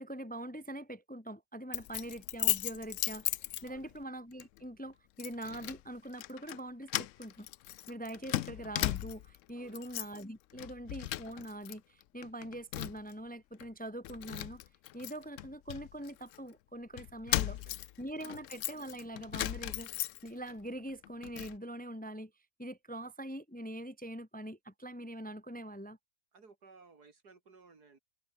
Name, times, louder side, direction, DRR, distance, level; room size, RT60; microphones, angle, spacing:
voice 1, 0.0-7.5 7.9-14.6 14.9-17.6 18.0-19.9 20.2-22.3 22.6-26.0, right 1 dB, 5° left, 1.4 m, -43 dB
Keys jangling, 1.7-4.0 4.4-4.6 5.2-5.8 6.1-6.6 6.9-9.4 9.7-10.2 10.5-11.7 12.0-13.1 13.6-13.7 14.0-16.4 17.0-20.5 20.9-21.6, left 14 dB, 75° left, 0.7 m, -37 dB
voice 2, 9.5-9.8 17.5-17.8 18.2-18.4 26.3-28.0, right 4 dB, 65° right, 3.4 m, -59 dB
omnidirectional pair, 1.8 m